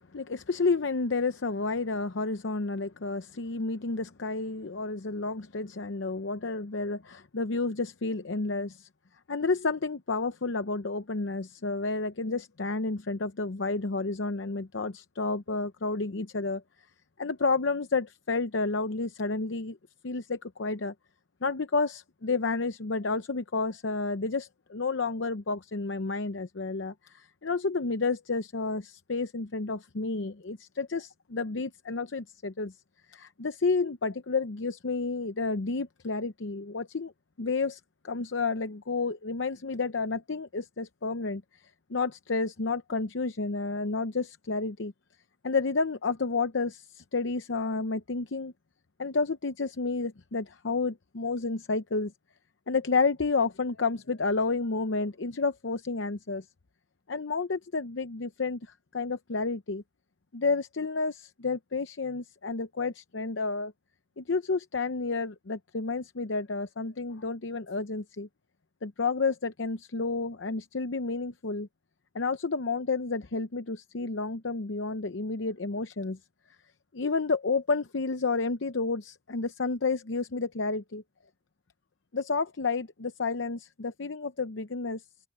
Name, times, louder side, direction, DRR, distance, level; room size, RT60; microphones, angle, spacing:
voice 1, 0.1-8.9 9.3-16.6 17.2-19.8 20.0-20.9 21.4-32.7 33.1-37.1 37.4-41.4 41.9-44.9 45.4-48.5 49.0-52.1 52.7-56.4 57.1-59.8 60.3-63.7 64.2-68.3 68.8-71.7 72.1-76.2 76.9-81.0 82.1-85.0, left 3 dB, 75° left, 0.8 m, -30 dB
open air
head